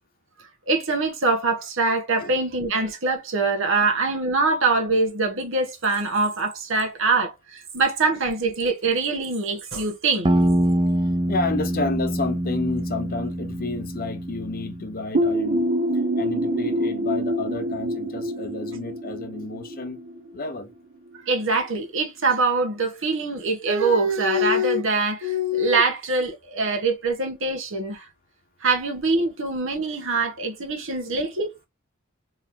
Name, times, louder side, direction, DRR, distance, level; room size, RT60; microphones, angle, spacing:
voice 1, 0.7-10.3 21.2-28.1 28.6-31.5, right 3 dB, 65° right, 1.5 m, -23 dB
sound 1, 10.2-14.9, right 1 dB, 25° right, 0.7 m, -24 dB
voice 2, 11.3-15.6 16.2-20.0 20.3-20.7, left 3 dB, 45° left, 0.9 m, -30 dB
sound 2, 15.1-20.7, right 1 dB, 45° right, 0.9 m, -26 dB
4.5 x 3.1 x 2.8 m
head